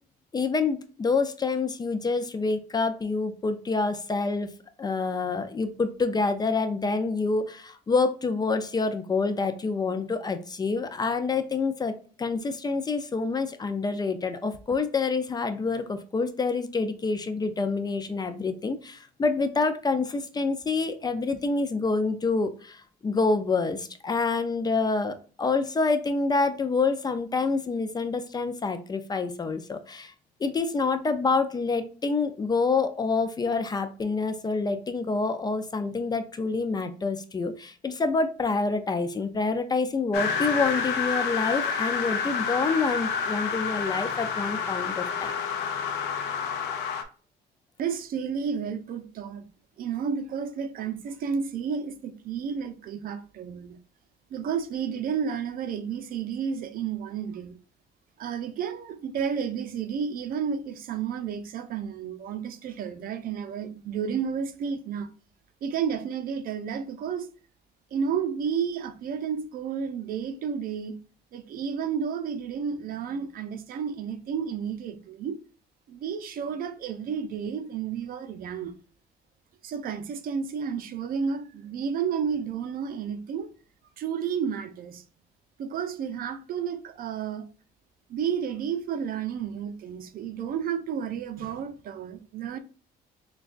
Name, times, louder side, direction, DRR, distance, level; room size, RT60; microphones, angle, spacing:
voice 1, 0.3-4.5 4.8-11.9 12.2-30.1 30.4-45.3, left 4 dB, 25° left, 0.4 m, -27 dB
sound 1, 40.1-47.0, left 6 dB, 90° left, 0.6 m, -29 dB
voice 2, 47.8-49.5 49.8-53.8 54.3-57.6 58.2-65.1 65.6-67.3 67.9-71.0 71.3-75.4 75.9-78.7 79.6-83.5 84.0-85.0 85.6-87.5 88.1-92.6, right 7 dB, 60° right, 0.6 m, -31 dB
6.1 x 2.3 x 2.5 m
cardioid pair, 110°, 17 cm